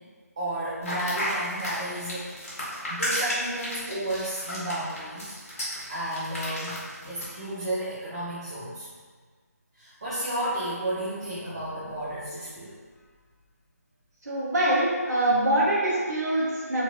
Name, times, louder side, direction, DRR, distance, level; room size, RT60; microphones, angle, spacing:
voice 1, 0.4-2.3 2.9-5.3 5.9-8.9 9.7-12.7, right 1 dB, 20° right, -11 dB, 0.4 m, -32 dB
sound 1, 0.8-7.3, equal, 55° left, 1.2 m, -33 dB
voice 2, 14.2-16.8, right 1 dB, 85° right, -7 dB, 0.8 m, -24 dB
2.8 x 2.8 x 2.5 m, 1.5 s
figure-of-eight pair, 170°, 9 cm